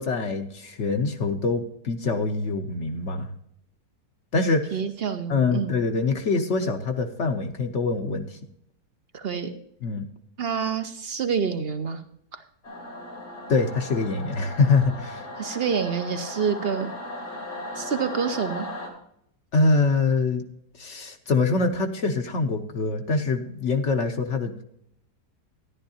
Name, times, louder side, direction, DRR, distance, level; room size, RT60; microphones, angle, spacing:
voice 1, 0.0-3.3 4.3-4.8 5.3-8.4 9.8-10.0 13.5-15.3 19.5-20.4 20.8-24.6, left 3 dB, 55° left, 6 dB, 1.0 m, -24 dB
voice 2, 4.7-5.7 9.1-9.5 10.4-12.0 12.3-12.4 15.4-16.9 17.8-18.7, right 6 dB, 55° right, 9 dB, 0.7 m, -27 dB
Singing / Musical instrument, 12.6-18.9, left 1 dB, 85° left, 3.0 m, -37 dB
13.0 x 11.0 x 2.8 m, 0.73 s
omnidirectional pair, 1.7 m